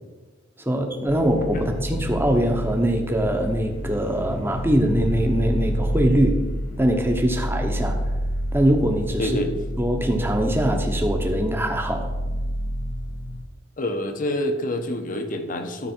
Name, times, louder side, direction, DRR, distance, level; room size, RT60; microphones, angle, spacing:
voice 1, 0.6-6.4 6.8-8.0 8.5-9.3 9.8-12.1, right 1 dB, 10° right, 4 dB, 1.0 m, -22 dB
sound 1, 1.1-13.4, equal, 65° left, 1.1 m, -28 dB
voice 2, 9.2-9.5 13.8-15.9, left 1 dB, 45° left, 6 dB, 1.0 m, -27 dB
12.5 x 5.5 x 4.5 m, 1.2 s
head